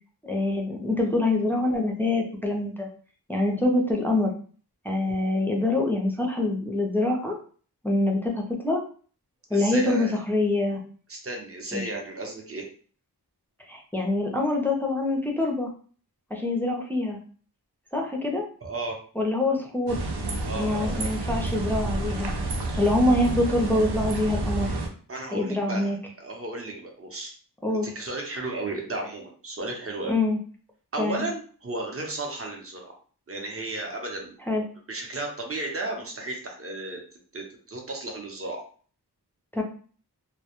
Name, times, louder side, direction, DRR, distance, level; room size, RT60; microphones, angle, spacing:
voice 1, 0.3-2.9 3.3-4.3 4.8-7.4 7.8-8.8 9.5-10.8 11.7-11.8 13.7-15.7 16.3-17.2 17.9-18.4 19.2-20.0 20.5-22.3 22.8-24.7 25.3-26.0 27.6-27.9 30.1-30.4 31.0-31.3 34.5-34.6 39.5-39.6, left 2 dB, 5° left, 0 dB, 0.4 m, -25 dB
voice 2, 9.5-10.2 11.1-12.7 18.6-19.0 20.4-20.9 25.1-27.3 27.7-30.2 30.9-32.9 33.3-34.4 34.9-37.0 37.3-38.6, right 2 dB, 35° right, 1 dB, 0.7 m, -34 dB
sound 1, 19.9-24.9, right 2 dB, 75° right, 0.6 m, -29 dB
2.1 x 2.0 x 2.9 m, 0.43 s
wide cardioid pair, 70°, 40 cm